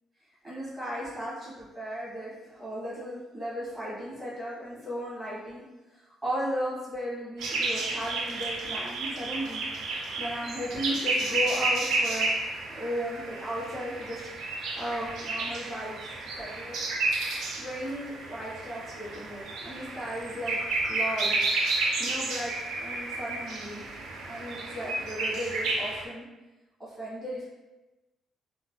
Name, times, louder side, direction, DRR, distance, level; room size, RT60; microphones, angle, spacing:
voice 1, 0.4-5.6 6.2-9.6 10.2-16.8 17.6-21.3 22.0-23.8 24.3-26.3 26.8-27.5, equal, 15° right, -9 dB, 1.3 m, -36 dB
sound 1, 7.4-26.0, right 2 dB, 80° right, 0.5 m, -31 dB
3.2 x 2.5 x 2.2 m, 1.1 s
cardioid pair, 120°, 0 cm